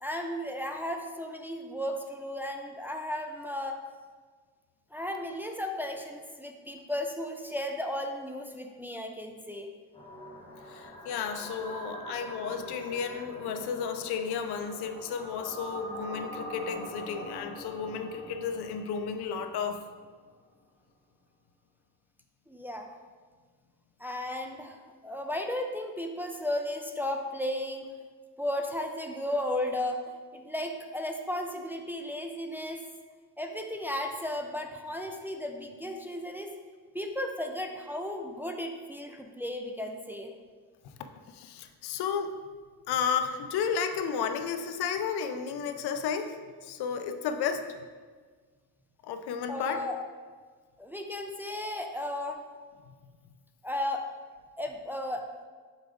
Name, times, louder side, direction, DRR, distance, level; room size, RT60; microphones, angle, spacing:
voice 1, 0.0-3.8 4.9-9.7 22.5-22.9 24.0-27.9 28.4-30.0 30.3-32.8 33.4-36.5 36.9-40.3 49.5-50.0 50.8-52.4 53.6-54.1 54.6-55.2, left 1 dB, 5° right, 3 dB, 0.4 m, -34 dB
sound 1, 9.9-20.1, equal, 15° left, 1.2 m, -44 dB
voice 2, 10.7-19.8 40.8-40.9 41.3-42.3 42.9-46.4 46.6-47.8 49.0-49.8, left 6 dB, 80° left, 8 dB, 0.6 m, -33 dB
5.3 x 4.6 x 3.9 m, 1.5 s
cardioid pair, 110°, 38 cm